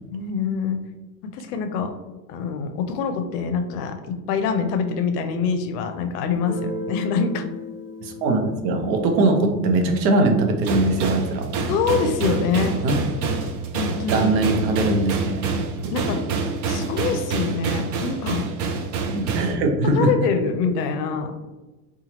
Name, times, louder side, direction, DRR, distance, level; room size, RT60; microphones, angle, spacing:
voice 1, 0.1-0.8 1.2-1.9 2.3-7.4 11.7-12.7 13.7-14.3 15.9-16.2 16.7-18.5 20.0-21.3, left 5 dB, 65° left, 7 dB, 0.6 m, -25 dB
Guitar, 6.3-11.8, left 2 dB, 5° right, 1.2 m, -37 dB
voice 2, 8.0-11.5 12.8-13.0 14.1-15.5 15.8-16.0 19.1-20.1, right 2 dB, 80° right, 4 dB, 0.7 m, -21 dB
sound 1, 10.6-19.6, right 4 dB, 40° right, 0.5 m, -27 dB
2.8 x 2.3 x 2.8 m, 1.1 s
hypercardioid pair, 90°, 50 cm